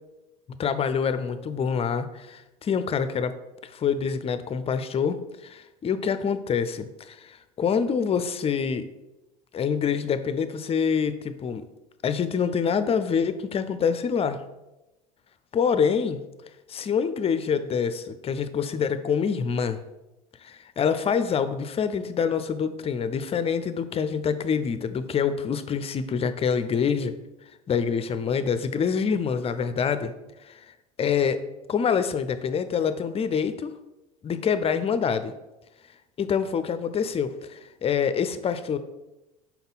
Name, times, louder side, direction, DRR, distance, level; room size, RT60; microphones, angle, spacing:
voice 1, 0.6-3.4 3.7-8.9 9.5-11.7 12.0-14.4 15.5-16.2 16.7-19.8 20.4-27.2 27.7-30.1 30.4-30.6 31.0-31.4 31.7-33.7 34.2-35.3 36.2-38.8, left 6 dB, 30° left, 12 dB, 0.5 m, -26 dB
5.4 x 4.4 x 4.0 m, 0.99 s
hypercardioid pair, 75°, 20 cm